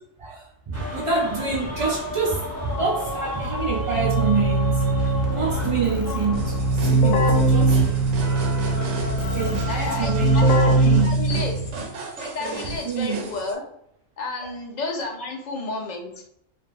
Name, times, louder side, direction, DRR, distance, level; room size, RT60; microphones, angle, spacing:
voice 1, 0.2-4.8 5.3-7.8 9.3-10.4 10.8-11.5 12.8-13.2, right 4 dB, 45° right, -3 dB, 0.4 m, -27 dB
sound 1, 0.7-11.0, equal, 15° right, 1.0 m, -33 dB
Keyboard (musical), 3.4-11.7, right 2 dB, 85° left, 1.1 m, -21 dB
sound 2, 6.3-13.5, right 3 dB, 65° right, 1.0 m, -35 dB
voice 2, 9.7-11.5 12.2-13.6 14.2-16.3, left 3 dB, 40° left, 1 dB, 0.8 m, -31 dB
3.5 x 2.5 x 4.1 m, 0.74 s
omnidirectional pair, 1.4 m